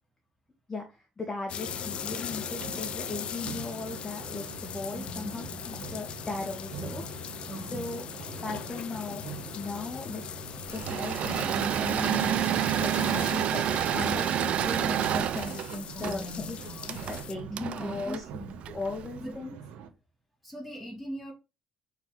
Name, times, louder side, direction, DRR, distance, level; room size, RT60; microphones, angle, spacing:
voice 1, 0.7-7.4 7.7-8.1 8.4-9.2 9.5-10.2 10.7-12.5 12.8-13.6 13.9-16.6 16.9-18.2 18.7-19.5, left 3 dB, 20° left, 2 dB, 2.1 m, -37 dB
showering shower different intensities water bathroom WC, 1.5-17.3, left 8 dB, 50° left, 0.7 m, -40 dB
sound 1, 1.6-19.9, right 7 dB, 85° right, 1.8 m, -44 dB
voice 2, 7.5-7.9 15.9-17.0 17.5-18.5 19.2-19.3 20.4-21.3, equal, ahead, -2 dB, 4.1 m, -40 dB
Engine / Mechanisms, 10.7-19.1, right 10 dB, 60° right, 0.6 m, -29 dB
7.5 x 4.7 x 5.7 m, 0.28 s
cardioid pair, 120°, 2 cm